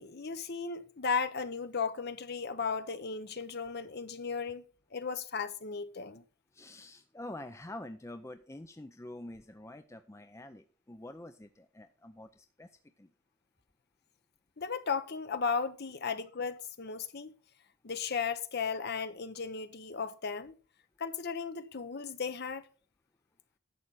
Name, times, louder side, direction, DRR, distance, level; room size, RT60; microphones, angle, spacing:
voice 1, 0.0-4.6 4.9-6.2 14.6-17.3 17.8-20.5 21.0-22.7, left 5 dB, 45° left, 0.7 m, -35 dB
voice 2, 6.5-12.7 13.0-13.1, left 1 dB, 15° left, 0.4 m, -46 dB
11.0 x 7.4 x 4.0 m
head